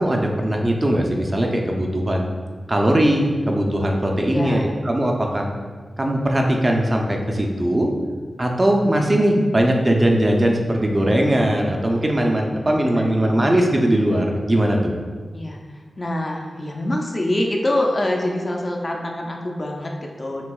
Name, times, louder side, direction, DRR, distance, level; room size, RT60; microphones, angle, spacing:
voice 1, 0.0-2.3 2.7-5.5 6.0-7.9 8.4-14.9, right 1 dB, 25° right, 1 dB, 0.5 m, -20 dB
voice 2, 4.3-4.7 12.6-13.6 15.3-20.5, left 1 dB, 35° left, 0 dB, 0.5 m, -26 dB
6.0 x 2.9 x 2.3 m, 1.5 s
wide cardioid pair, 85°, 0 cm